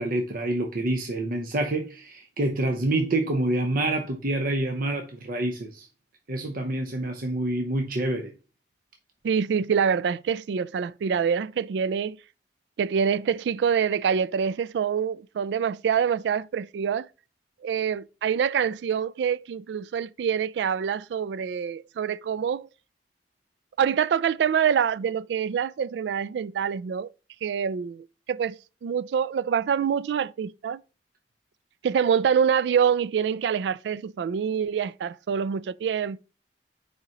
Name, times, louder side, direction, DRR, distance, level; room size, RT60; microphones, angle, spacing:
voice 1, 0.0-5.9 6.3-8.3, right 1 dB, 55° right, 0.8 m, -27 dB
voice 2, 9.2-12.2 12.8-17.1 17.6-22.7 23.8-27.1 27.4-30.8 31.8-36.2, right 7 dB, 70° right, 0.3 m, -26 dB
6.6 x 5.0 x 2.9 m
head